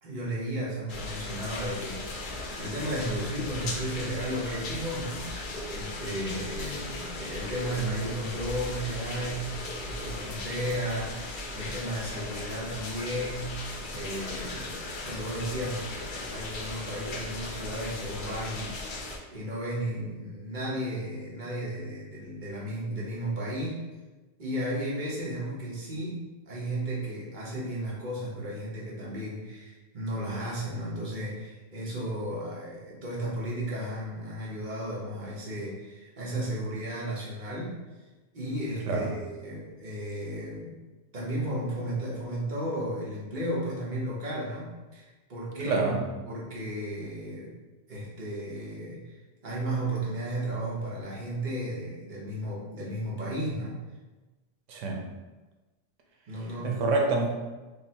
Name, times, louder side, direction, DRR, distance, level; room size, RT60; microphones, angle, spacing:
voice 1, 0.0-13.6 13.9-14.7 15.1-23.8 24.4-37.8 38.3-40.8 41.1-45.8 46.3-47.5 47.9-49.0 49.4-53.8 56.3-56.8, right 1 dB, 45° right, -6 dB, 1.1 m, -34 dB
sound 1, 0.9-19.2, left 2 dB, 55° left, 0.6 m, -37 dB
voice 2, 45.6-46.0 54.7-55.0 56.6-57.3, right 3 dB, 85° right, 1 dB, 1.0 m, -26 dB
5.2 x 2.1 x 2.7 m, 1.2 s
omnidirectional pair, 1.2 m